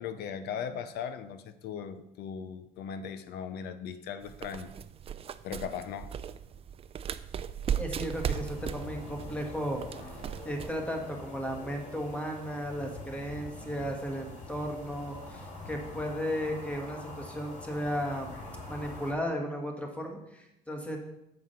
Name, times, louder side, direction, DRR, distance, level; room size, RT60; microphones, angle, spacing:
voice 1, 0.0-4.7 5.4-6.1, left 7 dB, 75° left, 12 dB, 0.5 m, -38 dB
sound 1, 4.2-10.8, right 8 dB, 35° right, 0.4 m, -37 dB
voice 2, 7.7-9.8 10.1-18.3 18.7-21.0, equal, 5° left, 2 dB, 1.5 m, -35 dB
sound 2, 8.1-19.1, left 2 dB, 45° left, 2.3 m, -45 dB
7.7 x 4.7 x 5.6 m, 0.87 s
cardioid pair, 110°, 17 cm